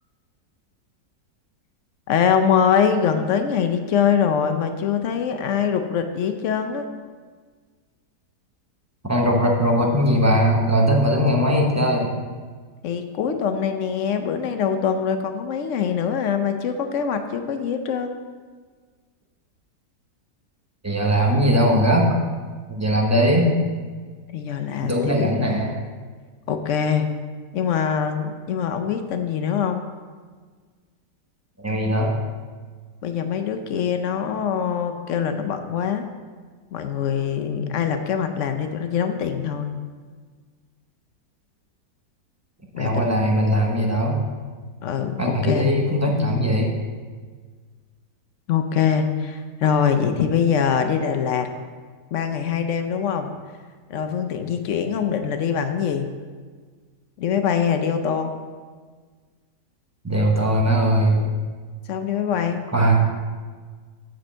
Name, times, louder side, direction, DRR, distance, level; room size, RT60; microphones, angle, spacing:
voice 1, 2.1-6.9 12.8-18.2 24.3-25.7 26.5-27.1 27.5-29.8 33.0-36.0 36.7-39.7 42.7-43.1 44.8-45.7 48.5-51.5 52.1-53.3 53.9-56.1 57.2-58.3 61.9-62.6, left 7 dB, 65° left, 7 dB, 0.7 m, -23 dB
voice 2, 9.0-12.1 20.8-22.1 22.7-23.5 24.8-25.7 31.6-32.1 42.8-44.2 45.2-46.7 60.0-61.3 62.7-63.0, equal, 15° right, -1 dB, 0.7 m, -19 dB
7.8 x 4.4 x 7.1 m, 1.5 s
omnidirectional pair, 1.8 m